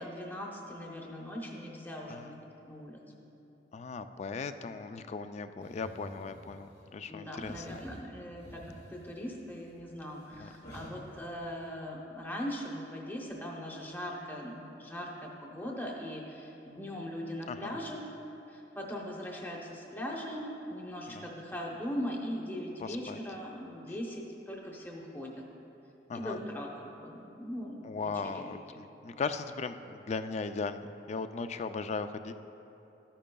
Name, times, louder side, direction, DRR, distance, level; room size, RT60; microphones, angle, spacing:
voice 1, 0.0-2.3 2.7-3.0 7.1-18.0 18.5-25.3 26.1-28.5, equal, 10° left, -1 dB, 0.8 m, -40 dB
voice 2, 3.7-7.8 10.3-10.5 17.5-17.7 21.1-21.3 22.8-23.2 26.1-26.4 27.8-32.3, left 4 dB, 40° left, 10 dB, 0.3 m, -38 dB
sound 1, 5.6-6.9 7.3-11.7, equal, 65° left, 1.8 m, -51 dB
13.5 x 10.0 x 2.3 m, 2.9 s
head